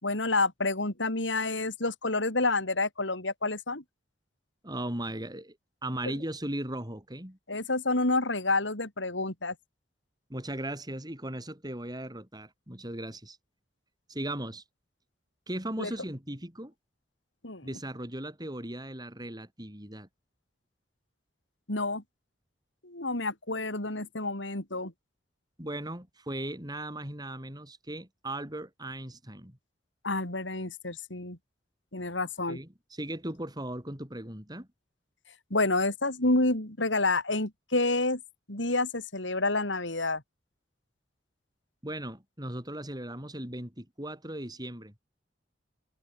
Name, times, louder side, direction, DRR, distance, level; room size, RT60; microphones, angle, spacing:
voice 1, 0.0-3.8 6.1-6.2 7.5-9.5 15.8-15.9 17.4-17.7 21.7-22.0 22.8-24.9 30.0-31.4 31.9-32.6 35.5-38.2 38.5-40.2, left 2 dB, 90° left, 5.1 m, -29 dB
voice 2, 4.6-5.6 5.8-7.4 10.3-13.4 14.1-14.6 15.5-16.7 17.6-20.1 25.6-29.6 32.5-34.7 41.8-44.9, right 1 dB, 20° right, 6.8 m, -37 dB
head